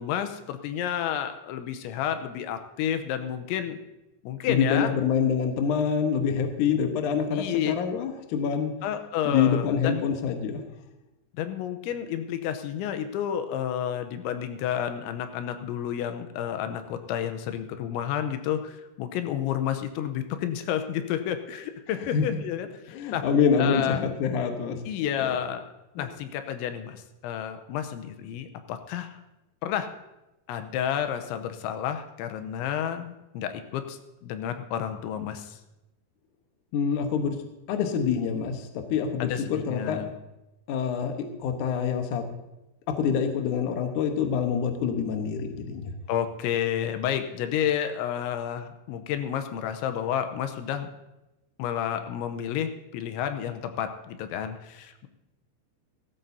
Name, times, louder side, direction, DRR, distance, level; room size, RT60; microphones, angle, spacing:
voice 1, 0.0-3.8 4.2-4.9 7.3-7.8 8.8-10.0 11.3-23.2 23.6-24.0 24.9-25.7 26.0-29.2 29.6-29.9 30.5-35.6 39.2-40.1 46.1-50.9 51.6-55.1, left 9 dB, 90° left, 9 dB, 3.2 m, -30 dB
voice 2, 4.5-8.7 9.3-10.6 22.1-22.2 22.9-24.8 25.2-25.3 26.0-26.1 36.7-37.4 37.7-40.0 40.7-41.1 41.4-42.2 43.0-45.9, left 7 dB, 70° left, 5 dB, 1.9 m, -26 dB
16.5 x 15.5 x 2.7 m, 0.96 s
omnidirectional pair, 5.2 m